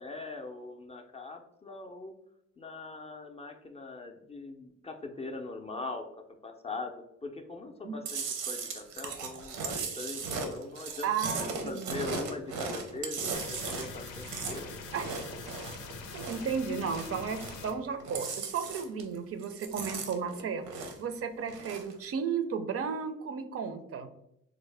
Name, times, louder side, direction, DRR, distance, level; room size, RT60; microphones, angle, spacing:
voice 1, 0.0-2.1 2.6-6.1 6.4-6.9 7.2-11.1 11.6-14.7 15.0-15.1, left 3 dB, 20° left, 4 dB, 0.4 m, -41 dB
Chewing mastication, 8.1-16.5 16.8-17.7 18.0-19.2 19.4-21.1 21.4-21.9, right 4 dB, 85° right, 0.7 m, -37 dB
voice 2, 11.0-12.0 14.9-15.3 16.1-24.1, right 6 dB, 50° right, 8 dB, 0.4 m, -34 dB
sound 1, 13.3-17.7, left 4 dB, 90° left, 0.5 m, -44 dB
3.6 x 2.0 x 3.2 m, 0.78 s
cardioid pair, 90°, 30 cm